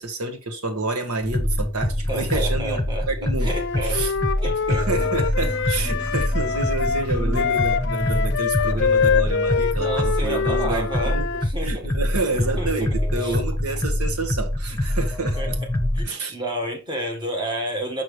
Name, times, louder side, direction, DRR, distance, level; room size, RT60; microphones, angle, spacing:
voice 1, 0.0-3.5 3.8-4.1 4.7-11.3 11.6-15.6 16.0-16.4, right 2 dB, 85° right, 1.4 m, -29 dB
sound 1, 1.2-16.1, left 1 dB, 10° left, 1.0 m, -25 dB
voice 2, 2.1-4.0 4.4-4.9 9.7-11.9 12.6-12.9 13.2-13.4 15.4-15.5 15.9-18.0, right 1 dB, 20° right, 1.6 m, -30 dB
Wind instrument woodwind instrument, 3.5-11.5, left 6 dB, 50° left, 0.4 m, -25 dB
6.2 x 6.0 x 3.2 m
head